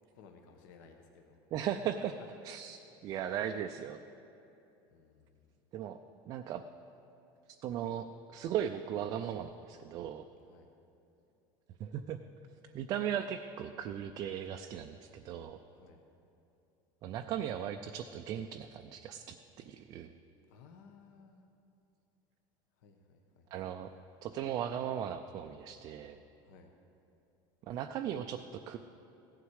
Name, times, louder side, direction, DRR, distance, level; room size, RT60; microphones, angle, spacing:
voice 1, 0.1-1.7 2.0-2.3 3.0-3.2 4.9-5.5 10.4-10.7 15.7-16.0 20.5-21.4 22.8-23.5 26.4-26.7, left 5 dB, 65° left, 3 dB, 1.1 m, -58 dB
voice 2, 1.5-2.1 2.4-4.0 5.7-6.0 6.3-6.6 7.6-10.2 11.8-12.2 12.7-15.6 17.0-20.1 23.5-23.9 24.2-26.2 27.7-28.8, right 9 dB, 35° right, 6 dB, 0.4 m, -37 dB
16.5 x 11.5 x 4.8 m, 2.8 s
cardioid pair, 175°, 11 cm